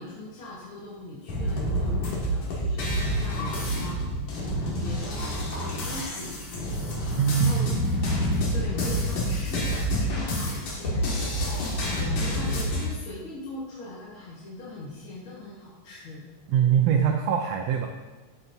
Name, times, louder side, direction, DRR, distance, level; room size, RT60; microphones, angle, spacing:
voice 1, 0.0-6.7 7.3-7.7 8.5-11.1 11.7-16.3, left 2 dB, 50° left, -8 dB, 2.2 m, -40 dB
sound 1, 1.3-12.8, equal, 85° left, 3.6 m, -28 dB
voice 2, 7.2-7.7 16.5-17.9, right 8 dB, 70° right, 2 dB, 1.7 m, -22 dB
13.5 x 8.1 x 2.8 m, 1.2 s
omnidirectional pair, 3.4 m